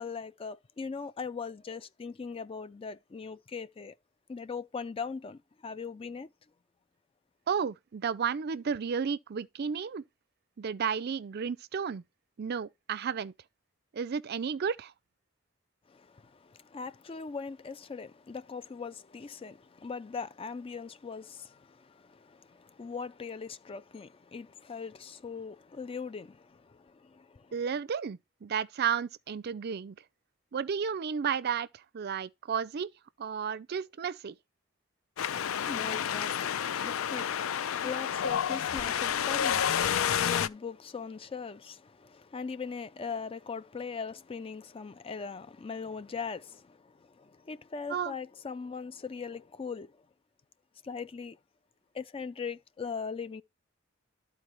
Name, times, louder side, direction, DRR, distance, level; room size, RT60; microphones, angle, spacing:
voice 1, 0.0-3.9 4.3-6.3 15.9-27.6 35.5-49.9 50.8-51.4 51.9-53.4, left 5 dB, 25° left, 0.4 m, -40 dB
voice 2, 7.5-10.0 10.6-12.0 12.4-13.3 13.9-14.9 27.5-30.0 30.5-31.7 31.9-32.9 33.2-34.3 47.9-48.1, right 7 dB, 50° right, 0.4 m, -32 dB
Wind, 35.2-40.5, left 9 dB, 90° left, 0.4 m, -30 dB
13.0 x 4.4 x 3.0 m
head